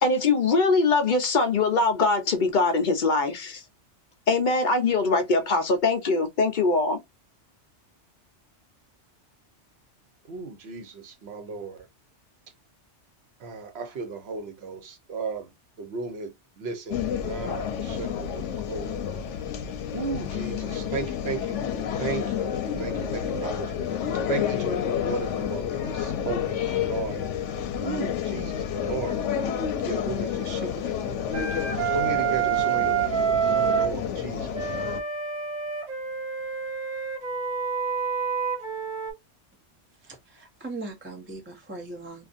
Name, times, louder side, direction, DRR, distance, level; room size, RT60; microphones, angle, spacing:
voice 1, 0.0-3.6 4.3-7.0, left 3 dB, 50° left, 0.7 m, -22 dB
voice 2, 10.3-11.9 13.4-15.5 15.8-18.9 19.9-21.6 22.0-24.0 24.3-27.2 27.8-29.2 29.8-33.0 33.5-34.6, right 4 dB, 65° right, 0.9 m, -35 dB
sound 1, 16.9-35.0, left 8 dB, 85° left, 0.9 m, -30 dB
Wind instrument woodwind instrument, 31.3-33.9 34.5-39.1, right 8 dB, 40° right, 1.1 m, -27 dB
voice 3, 40.0-42.3, right 2 dB, 15° right, 0.4 m, -39 dB
2.5 x 2.5 x 2.4 m
omnidirectional pair, 1.2 m